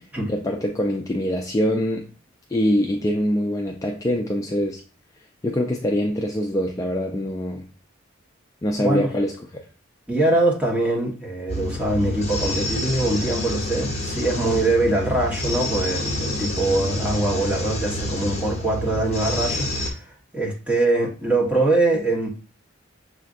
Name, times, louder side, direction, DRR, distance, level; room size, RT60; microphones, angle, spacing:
voice 1, 0.3-2.1 2.5-4.8 5.4-7.7 8.6-9.6, equal, 15° left, 0.3 m, -24 dB
voice 2, 10.1-22.3, right 2 dB, 5° right, 1.2 m, -23 dB
sound 1, 11.5-19.9, left 1 dB, 35° left, 1.2 m, -28 dB
6.5 x 2.5 x 2.5 m
head